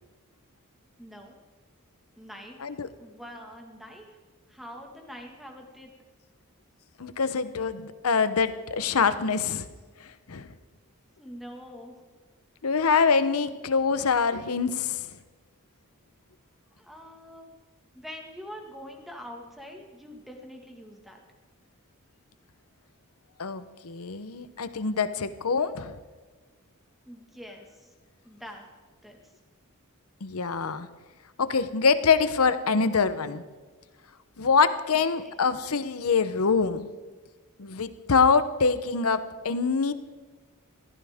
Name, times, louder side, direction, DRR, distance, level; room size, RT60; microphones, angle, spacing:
voice 1, 1.0-1.4 2.2-2.6 3.0-4.2 4.5-5.9 11.2-12.0 16.8-17.5 17.9-21.2 27.1-27.9 28.2-28.7 29.0-29.2 34.9-35.4, equal, ahead, 1 dB, 1.7 m, -44 dB
voice 2, 7.0-9.7 10.0-10.5 12.6-15.1 23.4-26.0 30.2-30.9 31.4-33.4 34.4-36.9 37.6-39.9, left 5 dB, 75° left, 12 dB, 0.8 m, -25 dB
21.5 x 15.0 x 3.6 m, 1.3 s
head